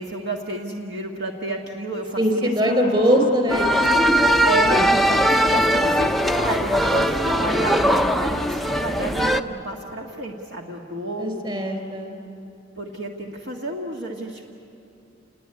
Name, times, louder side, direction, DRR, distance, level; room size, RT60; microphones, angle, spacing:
voice 1, 0.0-3.3 4.5-11.7 12.8-14.4, right 2 dB, 60° right, 0 dB, 1.8 m, -31 dB
voice 2, 2.2-4.5 11.2-12.2, equal, 25° right, 5 dB, 4.0 m, -22 dB
sound 1, 3.5-9.4, equal, ahead, 0.6 m, -20 dB
29.0 x 21.0 x 9.6 m, 2.7 s
head